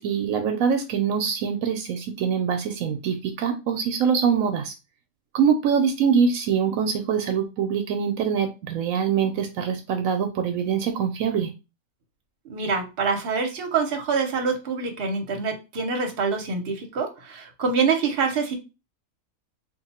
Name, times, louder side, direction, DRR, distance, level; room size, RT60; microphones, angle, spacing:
voice 1, 0.0-4.7 5.3-11.5, right 7 dB, 75° right, 6 dB, 1.0 m, -24 dB
voice 2, 12.5-18.5, right 5 dB, 50° right, 4 dB, 0.9 m, -25 dB
2.9 x 2.5 x 4.1 m, 0.28 s
omnidirectional pair, 1.5 m